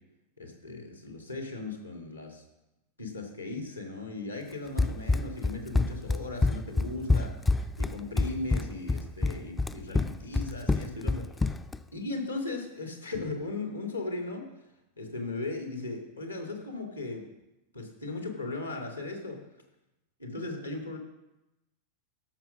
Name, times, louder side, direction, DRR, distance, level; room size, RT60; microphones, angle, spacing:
voice 1, 0.4-2.4 3.0-11.5 11.9-14.5 15.0-17.2 17.7-19.4 20.2-21.0, left 2 dB, 85° left, 2 dB, 2.3 m, -37 dB
Run, 4.8-11.8, left 3 dB, 10° left, 0.4 m, -27 dB
13.0 x 6.1 x 6.0 m, 0.97 s
figure-of-eight pair, 90°, 0 cm